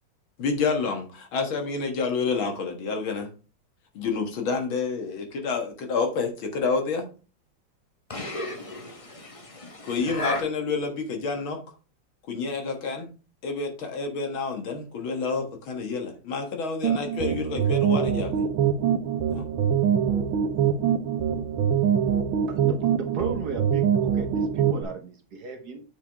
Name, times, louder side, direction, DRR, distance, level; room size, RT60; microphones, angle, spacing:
voice 1, 0.4-3.3 4.0-7.1 9.8-11.6 12.3-13.1 13.4-18.4 19.3-19.5, left 4 dB, 75° left, 2.4 m, -29 dB
voice 2, 8.1-10.4, left 2 dB, 20° left, 1.3 m, -34 dB
sound 1, 16.8-24.8, right 8 dB, 80° right, 1.8 m, -24 dB
voice 3, 22.5-25.8, right 5 dB, 55° right, 1.5 m, -35 dB
8.6 x 6.3 x 3.5 m
omnidirectional pair, 2.2 m